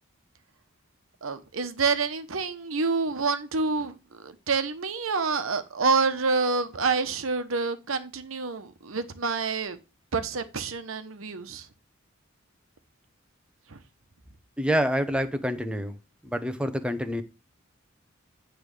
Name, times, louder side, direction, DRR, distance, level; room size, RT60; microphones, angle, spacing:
voice 1, 1.2-9.8 10.1-11.7 13.7-13.8, right 4 dB, 85° right, 1.0 m, -28 dB
voice 2, 14.6-16.0 16.2-17.2, equal, 5° right, 0.7 m, -27 dB
9.2 x 3.4 x 6.4 m
head